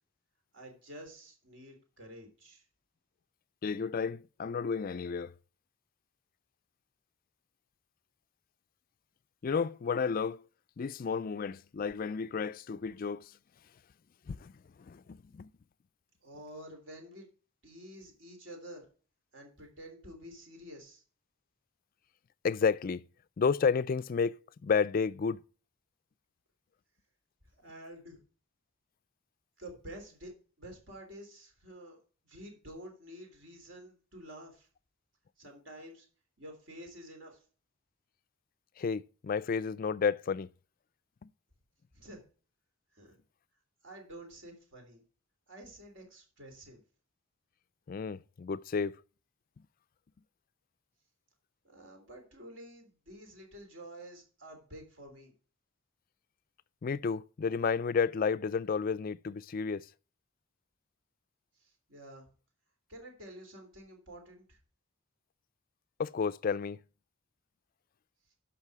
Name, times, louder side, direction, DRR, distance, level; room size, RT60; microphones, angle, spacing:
voice 1, 0.5-2.6 16.2-17.3 17.6-18.9 19.3-21.0 27.6-28.2 29.6-30.3 30.6-32.0 32.2-34.7 35.4-36.1 36.4-37.4 41.9-42.2 42.9-43.2 43.8-45.0 45.5-46.8 51.6-55.3 61.6-62.3 62.9-64.6, right 1 dB, 60° right, 3.3 m, -49 dB
voice 2, 3.6-5.3 9.4-10.4 10.8-13.3 14.3-14.5 14.8-15.5 22.4-23.1 23.4-25.4 38.8-40.5 41.2-41.3 47.9-49.0 56.8-59.9 66.0-66.8, left 5 dB, 45° left, 0.3 m, -31 dB
12.0 x 5.6 x 4.7 m
head